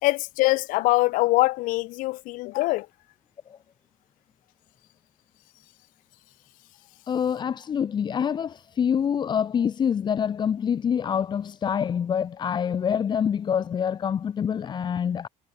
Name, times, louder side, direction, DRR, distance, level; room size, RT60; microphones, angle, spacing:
voice 1, 0.0-2.9, left 21 dB, 85° left, 5.9 m, -23 dB
voice 2, 7.1-15.3, left 8 dB, 35° left, 5.7 m, -26 dB
cardioid pair, 155°, 13 cm